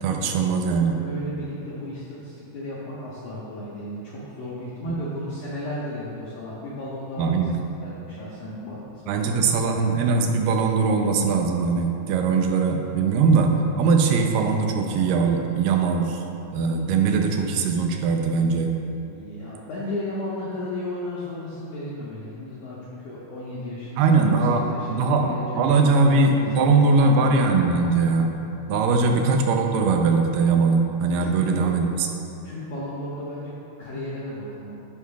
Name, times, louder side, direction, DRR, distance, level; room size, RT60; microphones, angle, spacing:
voice 1, 0.0-1.0 4.8-5.0 7.2-7.6 9.1-16.2 16.5-18.7 24.0-24.6 24.9-28.4 28.7-32.1, right 4 dB, 85° right, 3 dB, 2.2 m, -21 dB
voice 2, 0.9-7.5 7.8-9.5 18.9-27.3 31.2-31.8 32.4-34.7, left 1 dB, 75° left, -8 dB, 1.5 m, -35 dB
10.0 x 4.6 x 2.3 m, 2.8 s
omnidirectional pair, 3.8 m